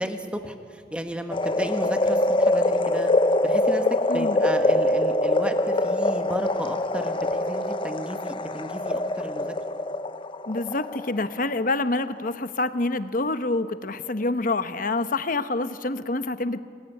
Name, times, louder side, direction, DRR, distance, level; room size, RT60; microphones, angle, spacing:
voice 1, 0.0-3.1 3.4-3.9 4.1-9.5, equal, 5° right, 6 dB, 1.6 m, -33 dB
sound 1, 1.3-11.6 12.0-12.1, left 1 dB, 30° left, 0.7 m, -24 dB
voice 2, 4.1-4.4 10.5-16.6, left 2 dB, 50° left, 11 dB, 1.0 m, -27 dB
25.5 x 20.0 x 9.8 m, 2.3 s
head